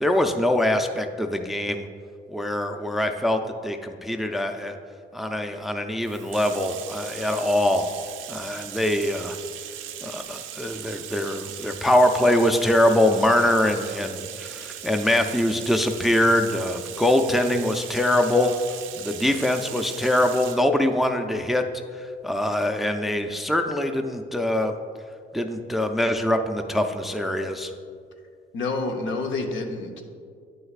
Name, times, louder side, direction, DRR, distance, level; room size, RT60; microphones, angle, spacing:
voice 1, 0.0-1.8 2.3-4.8 5.1-7.9 8.3-9.4 10.0-18.5 18.9-21.6 22.0-24.7 25.3-27.7, left 1 dB, ahead, 5 dB, 0.4 m, -23 dB
Bathtub (filling or washing), 6.0-20.7, right 11 dB, 75° right, 0.5 m, -38 dB
voice 2, 28.5-30.0, left 3 dB, 75° left, 4 dB, 0.8 m, -28 dB
9.1 x 6.4 x 2.4 m, 2.2 s
cardioid pair, 90°, 20 cm